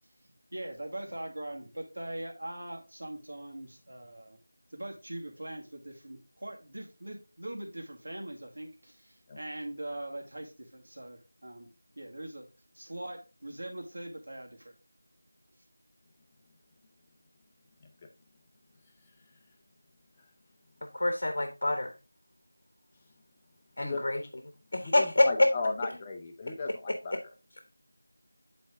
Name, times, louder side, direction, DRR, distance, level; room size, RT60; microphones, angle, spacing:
voice 1, 0.5-4.4 4.7-11.7 12.0-12.5 12.7-14.7, right 1 dB, 65° right, 2 dB, 2.0 m, -41 dB
voice 2, 20.9-21.9 23.8-24.2 24.7-25.3, left 1 dB, 50° left, 6 dB, 1.1 m, -27 dB
voice 3, 24.8-27.3, left 3 dB, 15° left, 3 dB, 0.7 m, -35 dB
8.0 x 4.4 x 3.6 m, 0.30 s
figure-of-eight pair, 175°, 0 cm